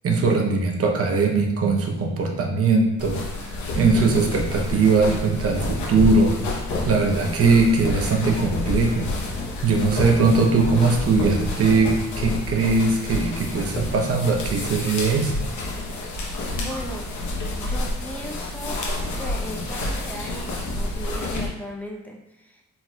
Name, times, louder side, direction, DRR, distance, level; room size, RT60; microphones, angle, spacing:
voice 1, 0.0-3.2 3.7-6.3 6.8-9.1 9.6-15.5, right 4 dB, 50° right, 2 dB, 0.8 m, -20 dB
sound 1, 3.0-21.5, left 2 dB, 70° left, 0.9 m, -29 dB
voice 2, 16.5-17.1 17.6-18.8 19.2-22.6, equal, 5° left, -1 dB, 0.7 m, -37 dB
4.2 x 4.1 x 2.3 m, 0.93 s
cardioid pair, 90°, 30 cm